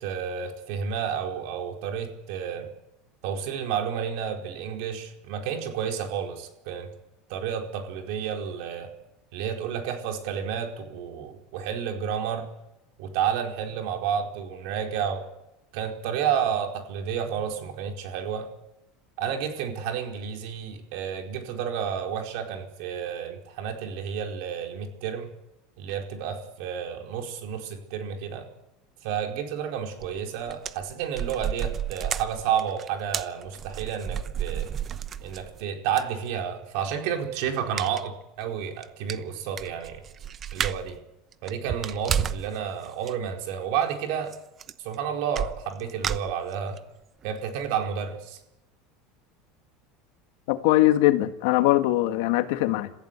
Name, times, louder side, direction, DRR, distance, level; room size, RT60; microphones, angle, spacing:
voice 1, 0.0-2.7 3.2-6.9 7.3-8.9 9.3-12.5 13.0-15.3 15.7-18.5 19.2-25.3 25.8-28.5 29.0-34.7 35.2-40.0 40.5-41.0 41.4-44.4 44.8-46.8 47.2-48.4, right 8 dB, 65° right, 4.6 m, -31 dB
sound 1, 30.0-30.2 30.5-35.6 36.0-36.1 37.8-38.1 38.4-38.5 38.8-38.9 39.1-41.0 41.3-42.5 42.9-43.1 44.3-44.4 44.6-45.0 45.4-46.8 47.2-47.3 47.6-47.7, right 9 dB, 30° right, 0.9 m, -31 dB
voice 2, 50.5-52.9, left 16 dB, 75° left, 1.9 m, -21 dB
27.5 x 15.5 x 8.3 m
supercardioid pair, 140°, 0 cm